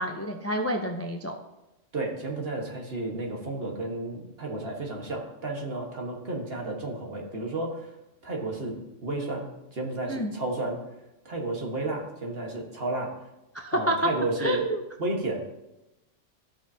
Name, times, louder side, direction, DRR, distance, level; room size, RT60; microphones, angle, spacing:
voice 1, 0.0-1.3 10.1-10.3 13.5-14.0 14.4-14.8, equal, 20° left, 2 dB, 0.4 m, -29 dB
voice 2, 1.9-7.9 8.2-10.8 11.3-13.1 13.7-14.7 15.0-15.4, right 2 dB, 55° right, 0 dB, 1.6 m, -32 dB
14.5 x 6.1 x 2.7 m, 0.95 s
omnidirectional pair, 1.2 m